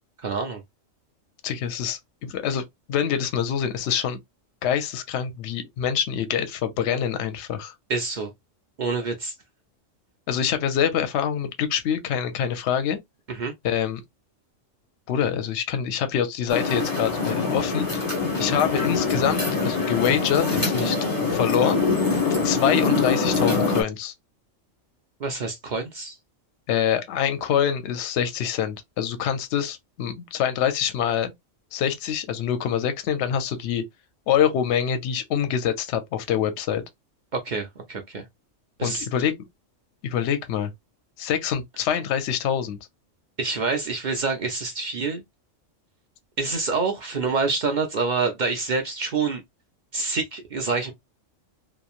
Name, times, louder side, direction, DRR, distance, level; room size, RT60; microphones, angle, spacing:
voice 1, 0.2-0.6 7.9-8.3 8.8-9.3 13.3-13.5 25.2-26.2 37.3-38.3 38.8-39.1 43.4-45.2 46.4-49.4 49.9-50.9, right 4 dB, 55° right, 0.5 m, -27 dB
voice 2, 1.4-4.2 4.6-7.7 10.3-13.0 13.6-14.0 15.1-18.0 18.4-21.0 21.3-21.8 22.4-24.1 26.7-31.3 31.7-33.8 34.3-36.8 38.8-39.3 40.0-40.7 41.2-42.8, left 8 dB, 65° left, 0.8 m, -25 dB
sound 1, 16.5-23.8, left 4 dB, 20° left, 0.7 m, -24 dB
3.0 x 2.2 x 2.3 m
omnidirectional pair, 1.3 m